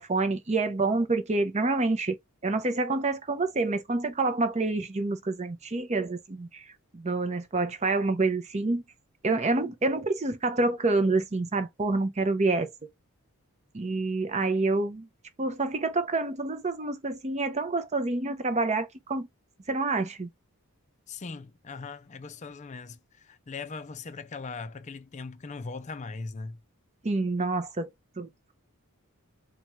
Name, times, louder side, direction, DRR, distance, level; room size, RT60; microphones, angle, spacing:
voice 1, 0.0-2.2 2.4-6.6 6.9-8.8 9.2-12.7 13.7-15.1 15.4-19.3 19.7-20.3 27.0-27.9 28.2-28.5, right 3 dB, 30° right, 0.6 m, -27 dB
voice 2, 21.1-26.6, left 4 dB, 30° left, 0.4 m, -40 dB
4.2 x 2.3 x 3.1 m
head